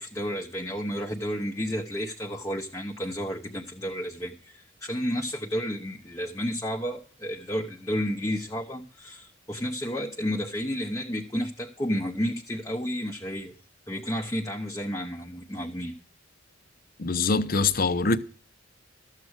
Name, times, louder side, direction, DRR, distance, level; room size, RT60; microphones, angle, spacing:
voice 1, 0.0-13.5 13.9-15.9, equal, 15° left, 0.8 m, -31 dB
voice 2, 17.0-18.2, left 4 dB, 45° left, 0.7 m, -23 dB
13.5 x 7.5 x 6.3 m
head